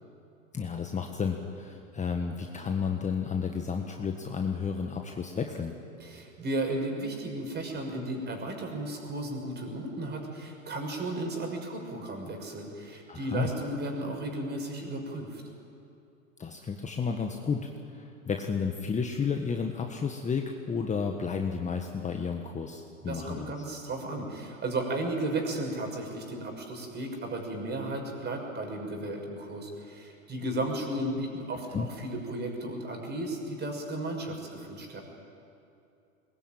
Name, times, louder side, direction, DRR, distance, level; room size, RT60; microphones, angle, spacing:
voice 1, 0.5-5.7 13.1-13.5 16.4-23.5 31.7-31.9, left 5 dB, 20° left, 3 dB, 1.5 m, -32 dB
voice 2, 6.0-15.4 23.1-35.0, right 2 dB, 25° right, 2 dB, 6.0 m, -34 dB
21.0 x 20.5 x 9.1 m, 2.7 s
hypercardioid pair, 100°, 40 cm